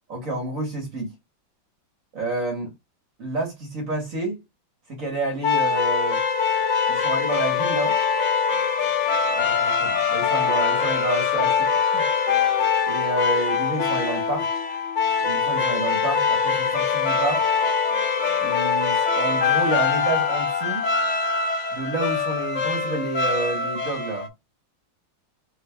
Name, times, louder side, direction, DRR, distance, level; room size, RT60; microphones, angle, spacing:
voice 1, 0.1-1.1 2.1-2.7 3.2-4.4 4.9-6.2 6.9-8.0 9.3-11.6 11.9-12.1 12.9-14.5 15.2-17.4 18.4-20.9 21.7-24.3, right 2 dB, 45° right, 1.5 m, -29 dB
sound 1, 5.4-24.3, left 6 dB, 90° left, 0.6 m, -23 dB
4.4 x 3.1 x 2.2 m
omnidirectional pair, 2.2 m